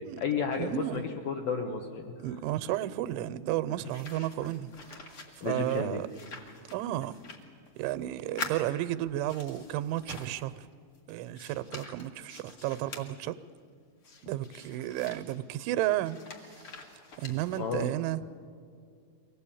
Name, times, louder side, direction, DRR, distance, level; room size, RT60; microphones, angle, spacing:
voice 1, 0.0-2.1 5.4-6.0 17.6-17.8, left 5 dB, 75° left, 2.1 m, -32 dB
voice 2, 0.6-1.0 2.2-6.1 6.7-7.1 7.8-10.7 11.1-13.4 14.2-16.2 17.2-18.2, right 14 dB, 90° right, 3.1 m, -33 dB
sound 1, 3.8-10.6 10.9-13.1 14.0-17.8, left 3 dB, 50° left, 1.6 m, -46 dB
24.0 x 18.0 x 8.5 m
omnidirectional pair, 5.3 m